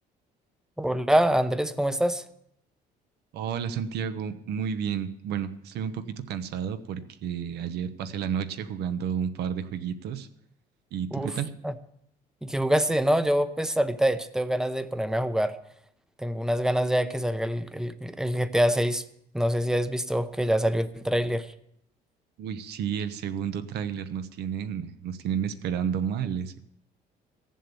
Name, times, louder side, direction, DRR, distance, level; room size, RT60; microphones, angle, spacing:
voice 1, 0.8-2.2 11.1-11.3 11.6-11.7 12.4-15.6 16.2-19.0 19.3-21.5, equal, 5° right, 11 dB, 0.8 m, -25 dB
voice 2, 3.3-10.3 10.9-11.5 22.4-26.6, right 8 dB, 75° right, 11 dB, 1.0 m, -31 dB
15.0 x 7.5 x 6.9 m, 0.76 s
cardioid pair, 110°, 17 cm